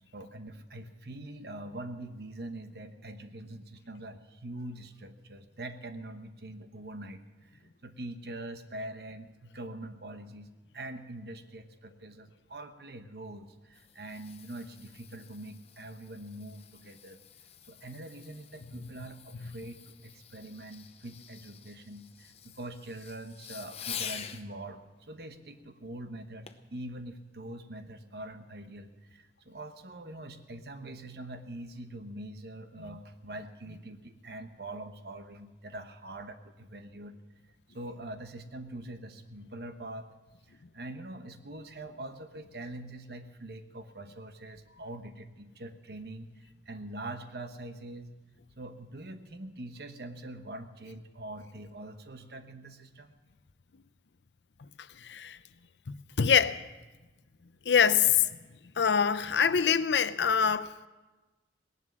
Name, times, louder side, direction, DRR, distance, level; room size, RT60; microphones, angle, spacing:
voice 1, 0.1-17.2 17.6-37.2 37.7-40.1 40.5-48.1 48.6-53.1, right 1 dB, 60° right, 1.1 m, -44 dB
Fireworks, 13.5-24.5 26.5-26.7 27.3-27.4, left 8 dB, 35° left, 0.7 m, -47 dB
voice 2, 55.0-55.4 56.2-56.6 57.7-58.3 58.8-60.9, left 7 dB, 80° left, 0.6 m, -24 dB
18.0 x 11.0 x 6.2 m
head